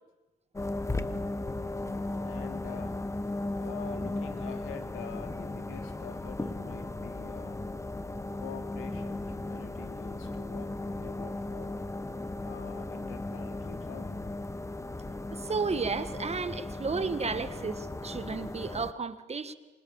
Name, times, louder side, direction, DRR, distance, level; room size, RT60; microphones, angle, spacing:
sound 1, 0.6-18.9, left 2 dB, 15° left, 1.2 m, -36 dB
voice 1, 1.6-3.0 3.6-7.7 8.3-11.8 12.4-14.2, left 8 dB, 85° left, 3.0 m, -47 dB
voice 2, 15.3-19.5, right 4 dB, 30° right, 1.7 m, -33 dB
27.5 x 26.0 x 7.3 m
cardioid pair, 90°, 20 cm